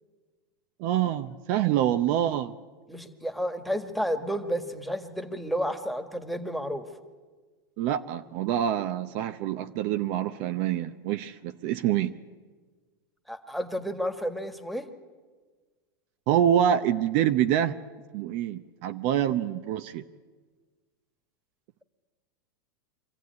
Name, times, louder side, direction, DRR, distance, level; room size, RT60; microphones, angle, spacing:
voice 1, 0.8-2.5 7.8-12.1 16.3-17.8 18.1-20.0, right 10 dB, 55° right, 9 dB, 0.8 m, -26 dB
voice 2, 2.9-6.9 13.3-14.9, equal, ahead, 9 dB, 1.7 m, -31 dB
24.5 x 14.5 x 9.5 m, 1.4 s
hypercardioid pair, 115°, 12 cm